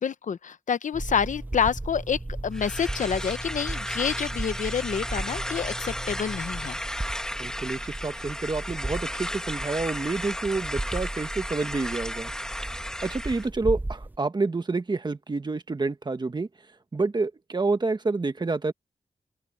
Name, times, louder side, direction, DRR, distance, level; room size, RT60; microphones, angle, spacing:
voice 1, 0.0-6.8, left 7 dB, 70° left, 0.7 m, -28 dB
sound 1, 0.9-14.2, right 2 dB, 15° right, 0.6 m, -36 dB
sound 2, 2.5-13.5, equal, 5° left, 1.3 m, -34 dB
voice 2, 7.4-12.3 13.0-16.5 16.9-18.7, right 3 dB, 35° right, 1.4 m, -28 dB
wide cardioid pair, 110°, 14 cm